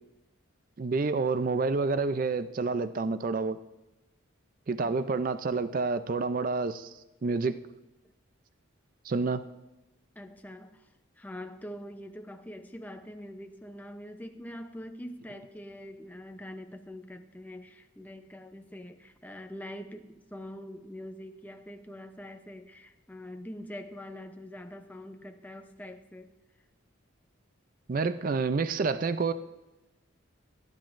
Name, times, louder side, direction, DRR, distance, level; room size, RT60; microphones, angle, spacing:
voice 1, 0.8-3.6 4.7-6.9 7.2-7.6 9.0-9.4 27.9-29.3, right 4 dB, 40° right, 12 dB, 0.4 m, -28 dB
voice 2, 10.2-10.9 11.2-26.4, equal, 10° left, 6 dB, 0.6 m, -44 dB
18.0 x 10.5 x 2.5 m, 0.99 s
head